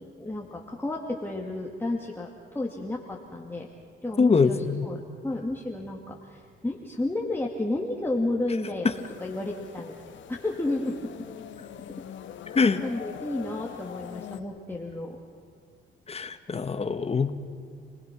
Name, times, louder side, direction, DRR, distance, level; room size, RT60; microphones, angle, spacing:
voice 1, 0.2-3.7 4.0-10.0 10.3-11.0 12.8-15.2, left 2 dB, 10° left, -1 dB, 2.2 m, -32 dB
voice 2, 4.2-4.8 12.5-12.8 16.1-17.3, left 4 dB, 30° left, 9 dB, 1.5 m, -23 dB
sound 1, 8.9-14.4, left 9 dB, 70° left, 1.2 m, -42 dB
30.0 x 19.5 x 6.1 m, 2.3 s
cardioid pair, 90°, 20 cm